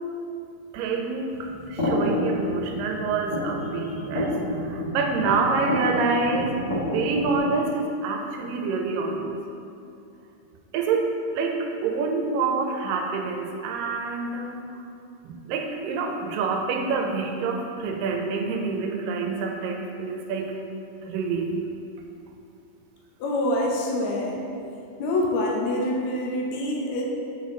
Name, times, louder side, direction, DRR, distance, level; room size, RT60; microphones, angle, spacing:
voice 1, 0.7-9.4 10.7-11.1 11.4-14.6 15.2-20.5 21.0-21.5, right 4 dB, 85° right, 2 dB, 2.3 m, -27 dB
sound 1, 1.3-7.4, left 1 dB, 45° left, 2.0 m, -29 dB
voice 2, 23.2-24.4 25.0-27.0, left 1 dB, 70° left, -1 dB, 1.8 m, -25 dB
6.9 x 4.9 x 3.8 m, 2.5 s
omnidirectional pair, 3.9 m